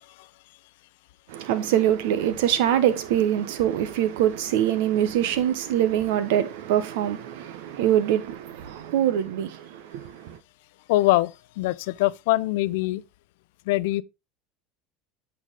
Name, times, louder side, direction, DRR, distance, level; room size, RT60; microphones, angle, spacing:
voice 1, 1.3-10.4, right 11 dB, 75° right, 1.2 m, -24 dB
voice 2, 10.9-13.0 13.7-14.0, left 18 dB, 75° left, 0.4 m, -23 dB
8.4 x 4.8 x 3.7 m
supercardioid pair, 125°, 0 cm